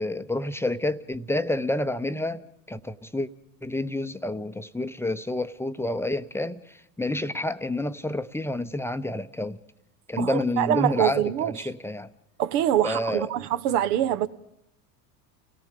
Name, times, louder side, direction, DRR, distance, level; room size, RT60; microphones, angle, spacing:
voice 1, 0.0-3.3 3.6-9.6 10.1-12.1 12.8-13.3, left 1 dB, 5° left, 0.7 m, -29 dB
voice 2, 10.2-11.5 12.4-14.3, right 11 dB, 70° right, 1.2 m, -24 dB
30.0 x 18.0 x 5.2 m
hypercardioid pair, 90°, 48 cm